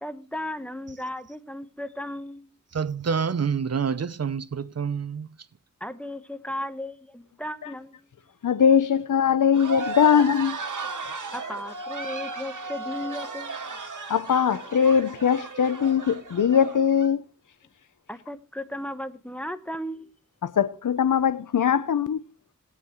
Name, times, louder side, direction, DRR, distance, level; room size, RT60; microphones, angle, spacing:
voice 1, 0.0-2.6 5.8-8.0 11.3-13.6 14.0-14.1 18.1-20.1, left 1 dB, 5° left, 1.0 m, -35 dB
voice 2, 2.7-5.3, right 6 dB, 55° right, 0.6 m, -27 dB
voice 3, 8.4-10.6 14.1-17.2 20.4-22.2, left 8 dB, 80° left, 0.6 m, -21 dB
sound 1, 9.5-17.1, right 3 dB, 75° right, 1.9 m, -35 dB
18.5 x 9.4 x 3.0 m
wide cardioid pair, 85°, 30 cm